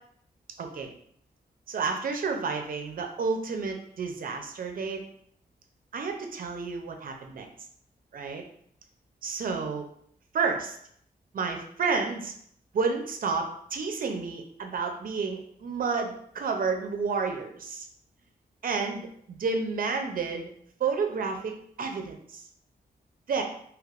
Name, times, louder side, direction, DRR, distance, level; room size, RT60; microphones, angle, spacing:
voice 1, 0.6-0.9 1.7-5.0 5.9-7.5 8.1-8.4 9.2-9.9 10.3-10.8 11.3-12.3 12.7-17.9 18.6-20.5 20.8-22.4 23.3-23.4, right 5 dB, 60° right, 4 dB, 0.5 m, -30 dB
3.2 x 2.9 x 2.4 m, 0.66 s
wide cardioid pair, 135°, 17 cm